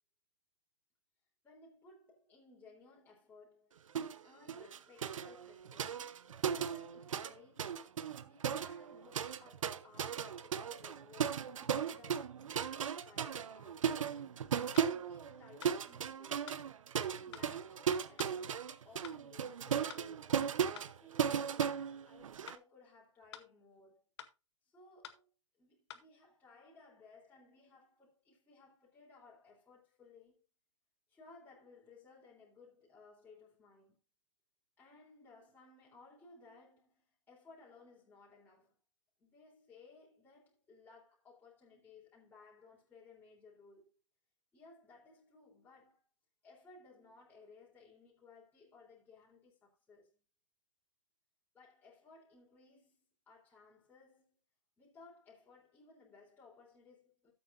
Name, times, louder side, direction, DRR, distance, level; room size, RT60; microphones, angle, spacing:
voice 1, 1.4-6.0 6.5-7.8 8.2-14.2 14.8-16.6 17.0-20.4 20.8-24.0 24.6-25.3 25.6-30.4 31.1-34.0 34.8-38.8 39.2-43.9 44.5-46.0 46.4-50.2 51.5-54.4 54.8-57.3, left 3 dB, 10° left, 3.6 m, -60 dB
sound 1, 3.9-4.2 4.5-7.3 7.6-22.5, right 8 dB, 85° right, 0.9 m, -36 dB
sound 2, 14.7-14.9 15.6-15.8 16.5-16.6 17.3-17.5 18.2-18.4 19.0-19.2 19.9-20.1 20.8-20.9 21.6-21.8 22.5-22.6 23.3-23.5 24.2-24.4 25.0-25.2 25.9-26.1, left 10 dB, 55° left, 1.3 m, -50 dB
13.5 x 8.1 x 2.6 m
hypercardioid pair, 135°, 16 cm